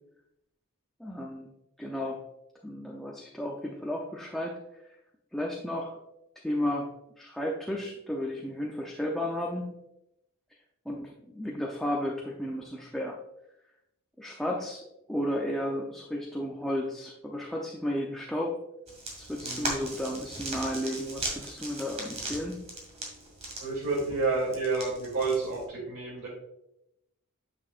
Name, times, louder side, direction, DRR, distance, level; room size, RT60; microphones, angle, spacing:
voice 1, 1.0-1.5 1.8-2.2 2.6-4.6 5.3-6.0 6.4-6.9 7.2-9.7 10.9-13.2 14.2-18.6 19.2-22.6, left 1 dB, ahead, -3 dB, 0.6 m, -33 dB
sound 1, 18.9-25.6, right 2 dB, 30° right, 2.0 m, -39 dB
voice 2, 19.4-19.8 23.6-26.3, right 3 dB, 70° right, -8 dB, 2.8 m, -30 dB
9.1 x 6.2 x 2.5 m, 0.85 s
head